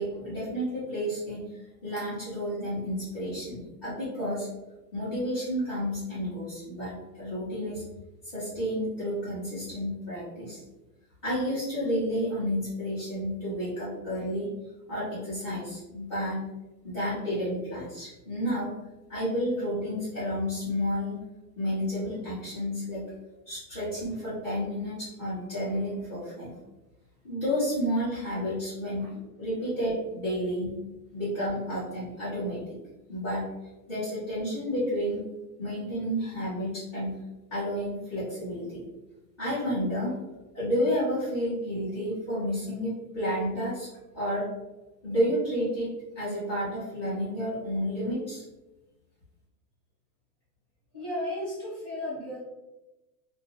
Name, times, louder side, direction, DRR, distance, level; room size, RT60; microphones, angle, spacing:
voice 1, 0.0-1.4 1.8-4.5 4.9-7.8 8.3-10.6 11.2-14.5 14.9-16.4 16.8-18.7 19.1-21.2 21.6-23.1 23.5-26.5 27.2-29.0 29.4-30.8 31.1-32.8 33.1-33.5 33.9-35.2 35.6-37.2 37.5-38.8 39.4-40.1 40.5-43.9 44.1-44.4 45.0-45.9 46.2-48.4, equal, 20° left, -17 dB, 0.3 m, -31 dB
voice 2, 50.9-52.4, left 1 dB, ahead, -13 dB, 1.0 m, -34 dB
2.2 x 2.2 x 2.8 m, 1.0 s
supercardioid pair, 180°, 49 cm